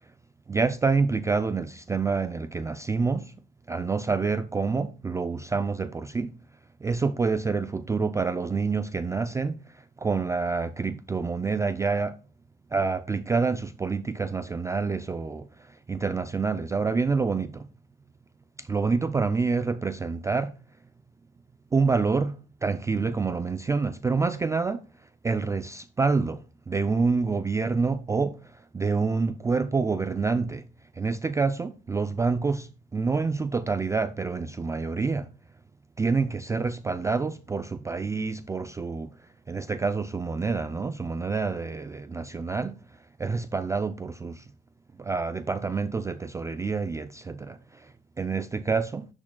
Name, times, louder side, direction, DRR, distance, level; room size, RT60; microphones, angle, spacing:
voice 1, 0.5-3.3 3.7-6.3 6.8-12.2 12.7-17.7 18.6-20.5 21.7-22.4 22.6-24.8 25.2-30.6 30.9-35.3 36.0-39.2 39.5-42.8 43.2-44.5 45.0-49.1, right 4 dB, 15° right, 0.3 m, -27 dB
10.0 x 6.1 x 2.2 m
cardioid pair, 130°, 20 cm